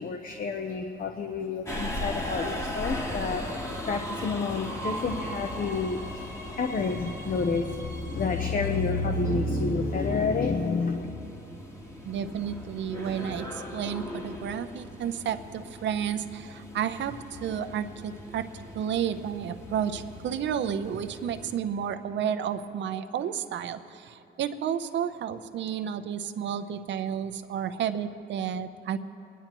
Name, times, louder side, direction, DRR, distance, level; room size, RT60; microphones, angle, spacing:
voice 1, 0.0-6.3 6.6-11.1, left 4 dB, 45° left, 4 dB, 0.8 m, -29 dB
Subway metro underground, 1.7-21.6, left 1 dB, 15° left, 1.4 m, -38 dB
voice 2, 12.0-29.0, right 8 dB, 65° right, 10 dB, 0.7 m, -31 dB
24.5 x 10.5 x 3.0 m, 2.8 s
cardioid pair, 90°, 20 cm